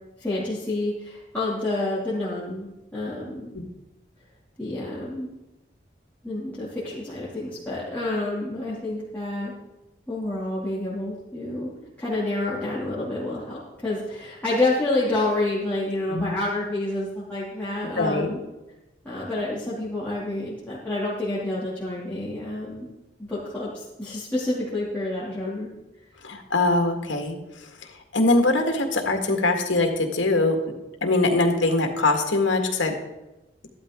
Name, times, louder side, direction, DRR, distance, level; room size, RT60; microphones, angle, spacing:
voice 1, 0.2-2.7 2.9-3.5 4.6-5.3 6.2-9.5 10.1-11.7 12.0-18.4 19.0-22.9 23.2-25.7, left 2 dB, 10° left, -11 dB, 2.8 m, -28 dB
voice 2, 18.0-18.3 26.2-30.6 31.0-33.0, left 2 dB, 90° left, 3 dB, 2.0 m, -23 dB
14.0 x 12.0 x 3.8 m, 0.98 s
head